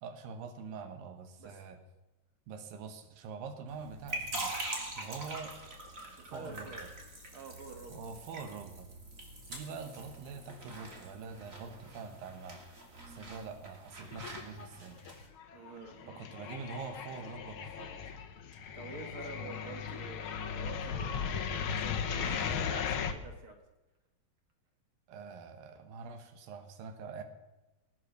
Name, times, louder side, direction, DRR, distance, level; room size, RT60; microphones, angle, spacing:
voice 1, 0.0-1.8 2.5-4.5 5.0-5.5 6.3-6.7 7.9-8.9 9.5-12.6 13.1-15.0 16.1-17.9 25.1-27.2, right 5 dB, 85° right, 7 dB, 3.1 m, -45 dB
sound 1, 3.7-15.3, right 2 dB, 25° right, 2.6 m, -44 dB
voice 2, 6.2-6.9 7.3-8.5 15.5-16.2 18.7-23.6, right 3 dB, 50° right, 4 dB, 1.8 m, -48 dB
sound 2, 14.1-14.8 15.1-23.1, left 7 dB, 80° left, 1.1 m, -37 dB
20.0 x 9.2 x 6.6 m, 1.1 s
omnidirectional pair, 3.9 m